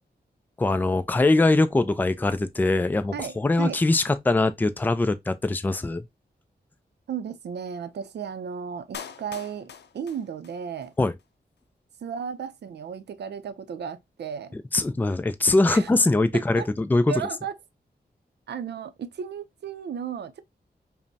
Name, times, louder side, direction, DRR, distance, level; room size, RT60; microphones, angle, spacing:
voice 1, 0.6-6.0 11.0-11.1 14.5-17.1, left 2 dB, 10° left, 0.3 m, -22 dB
voice 2, 3.1-3.8 7.1-10.9 12.0-14.5 15.7-15.9 16.3-16.7 17.1-17.6 18.5-20.4, right 7 dB, 80° right, 0.5 m, -34 dB
Clapping, 8.9-10.9 11.2-11.3, left 7 dB, 85° left, 0.5 m, -42 dB
5.2 x 2.0 x 2.7 m
wide cardioid pair, 165°, 17 cm